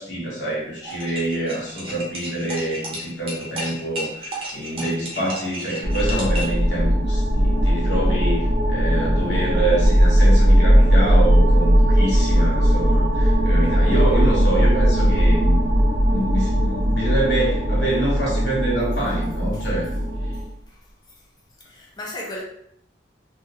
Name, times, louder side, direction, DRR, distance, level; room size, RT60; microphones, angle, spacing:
voice 1, 0.0-8.4 8.7-15.7 16.1-19.9, right 1 dB, 65° left, -5 dB, 1.0 m, -26 dB
sound 1, 0.8-6.6, equal, 30° right, 0.6 m, -33 dB
sound 2, 5.8-20.4, equal, 70° right, 0.7 m, -18 dB
voice 2, 21.6-22.4, left 1 dB, 20° left, -2 dB, 0.5 m, -35 dB
2.4 x 2.3 x 2.8 m, 0.69 s
head